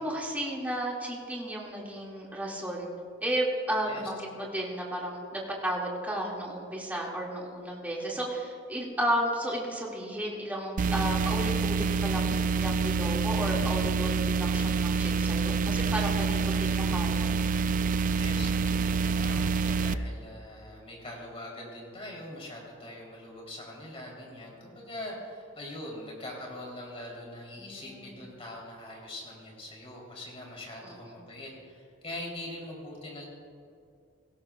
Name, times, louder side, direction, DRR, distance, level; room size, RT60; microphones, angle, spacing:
voice 1, 0.0-2.9 3.2-17.4 27.6-28.1 30.8-31.2, right 1 dB, 10° right, -3 dB, 2.3 m, -33 dB
sound 1, 10.8-19.9, right 4 dB, 45° right, 0.3 m, -27 dB
voice 2, 18.1-33.3, left 1 dB, 30° left, -2 dB, 3.6 m, -42 dB
18.0 x 16.0 x 2.4 m, 2.4 s
head